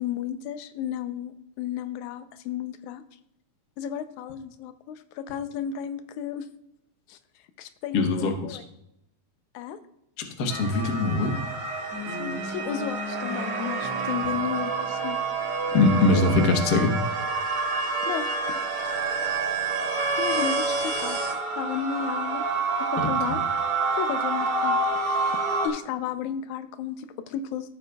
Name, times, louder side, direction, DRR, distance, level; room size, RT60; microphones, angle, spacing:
voice 1, 0.0-3.0 3.8-6.5 7.1-7.2 7.6-8.6 9.5-9.8 12.2-15.2 15.7-15.8 18.0-18.3 20.2-21.2 21.6-22.5 22.8-23.4 24.0-27.7, left 9 dB, 90° left, 10 dB, 2.1 m, -33 dB
voice 2, 7.9-8.6 10.4-11.4 15.7-17.0 23.0-23.4, left 3 dB, 55° left, 3 dB, 1.0 m, -22 dB
sound 1, 10.5-25.7, right 3 dB, 75° right, 2.9 m, -28 dB
sound 2, 11.9-15.9, left 2 dB, 55° right, 2.6 m, -38 dB
14.5 x 7.8 x 2.3 m, 0.81 s
omnidirectional pair, 3.3 m